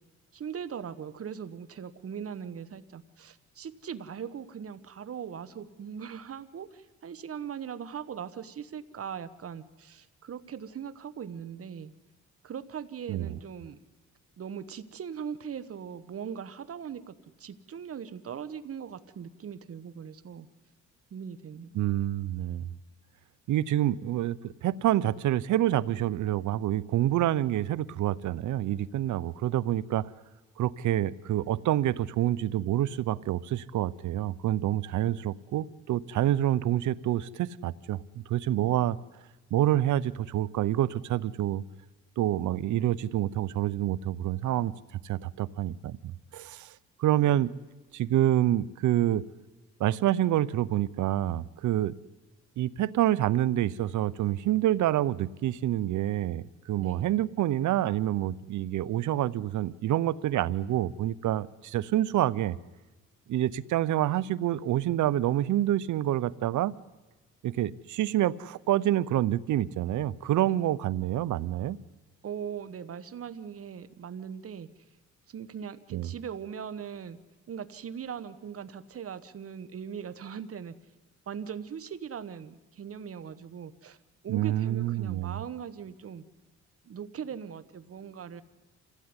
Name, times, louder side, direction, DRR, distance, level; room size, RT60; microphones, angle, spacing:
voice 1, 0.3-11.9 12.4-13.8 14.4-20.5 21.1-21.7 56.8-57.1 70.4-70.7 72.2-74.7 75.3-77.2 77.5-80.7 81.3-84.0 84.2-86.2 86.8-88.4, right 7 dB, 50° right, 14 dB, 1.4 m, -40 dB
voice 2, 21.7-22.7 23.5-30.1 30.6-39.0 39.5-41.6 42.2-44.7 45.0-46.7 47.0-47.5 47.9-49.2 49.8-51.9 52.6-62.6 63.3-66.7 67.4-71.8 75.9-76.1 84.3-85.4, right 13 dB, 75° right, 19 dB, 0.8 m, -27 dB
26.5 x 16.5 x 9.8 m, 1.2 s
cardioid pair, 90°, 30 cm